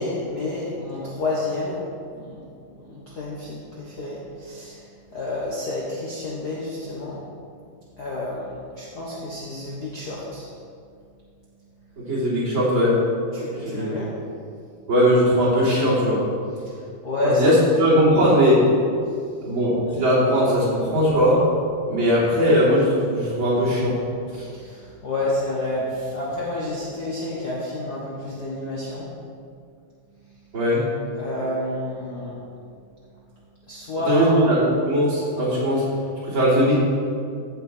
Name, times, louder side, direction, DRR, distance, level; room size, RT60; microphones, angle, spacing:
voice 1, 0.0-1.8 2.1-2.4 2.7-7.2 8.0-10.5 13.3-14.1 16.6-17.5 24.4-29.1 31.2-32.7 33.7-34.5, left 2 dB, 70° left, -6 dB, 0.9 m, -29 dB
voice 2, 12.0-13.0 13.6-13.9 14.9-16.2 17.2-18.6 19.5-21.4 21.9-24.0 24.3-24.5 30.5-30.8 34.1-35.8 36.2-36.7, equal, 35° right, -9 dB, 3.7 m, -19 dB
15.0 x 6.9 x 4.5 m, 2.3 s
omnidirectional pair, 4.0 m